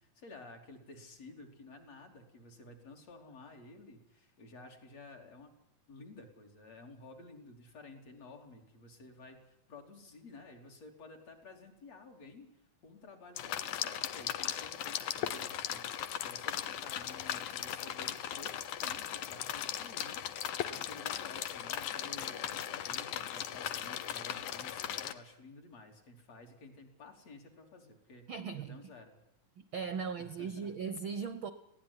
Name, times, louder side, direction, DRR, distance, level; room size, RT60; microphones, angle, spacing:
voice 1, 0.0-5.5 5.9-12.5 12.8-18.5 18.8-28.2 28.5-29.2 29.8-30.8, left 2 dB, 55° left, 4.3 m, -53 dB
sound 1, 13.4-25.1, left 10 dB, 85° left, 2.5 m, -38 dB
voice 2, 28.3-28.8 29.6-31.5, right 6 dB, 65° right, 1.3 m, -38 dB
20.5 x 16.5 x 9.8 m
omnidirectional pair, 3.4 m